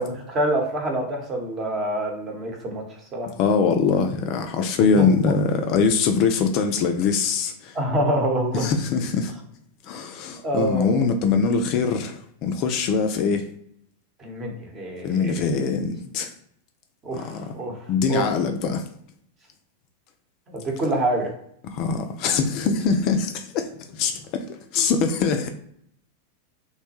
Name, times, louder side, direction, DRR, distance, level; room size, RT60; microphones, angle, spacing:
voice 1, 0.0-2.8 3.1-3.3 4.9-5.3 7.7-8.7 10.4-11.1 14.2-15.5 17.0-18.3 20.5-21.3, right 1 dB, 25° right, 0.9 m, -26 dB
voice 2, 3.4-7.8 8.5-9.3 9.8-13.5 15.0-16.3 17.1-17.5 17.9-18.9 21.7-25.5, left 5 dB, 40° left, 0.3 m, -23 dB
3.0 x 2.1 x 2.9 m
figure-of-eight pair, 90°, 0 cm